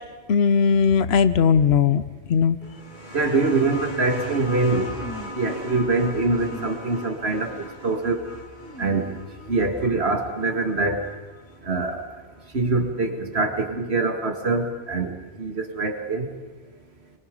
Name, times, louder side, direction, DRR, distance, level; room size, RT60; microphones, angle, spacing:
voice 1, 0.3-2.0 2.3-2.6, left 6 dB, 80° left, 14 dB, 1.0 m, -18 dB
sound 1, 2.6-11.9 13.0-13.1, right 1 dB, 50° left, 2.3 m, -39 dB
voice 2, 3.1-5.1 5.3-8.2 8.8-9.2 9.5-11.1 11.6-12.0 12.5-16.3, right 3 dB, 85° right, 5 dB, 2.3 m, -24 dB
sound 2, 4.9-5.5 6.3-7.0 7.3-7.8 8.6-9.8, equal, 10° left, 2.3 m, -43 dB
23.0 x 22.0 x 5.3 m, 1.3 s
omnidirectional pair, 1.1 m